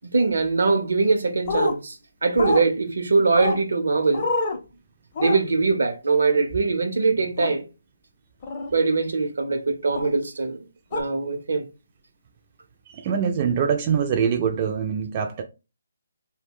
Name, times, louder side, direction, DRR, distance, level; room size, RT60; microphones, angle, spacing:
voice 1, 0.0-2.0 2.2-4.3 5.2-7.7 8.7-10.7 10.9-11.7, right 4 dB, 75° right, 0.6 m, -22 dB
sound 1, 1.5-1.7 2.4-2.6 3.4-3.6 4.1-4.6 5.1-5.4 7.4-7.5 8.4-8.7 9.9-10.1 10.9-11.0, left 2 dB, 35° left, 0.5 m, -25 dB
voice 2, 12.9-15.4, right 7 dB, 30° right, 0.3 m, -24 dB
2.3 x 2.1 x 3.6 m
figure-of-eight pair, 155°, 0 cm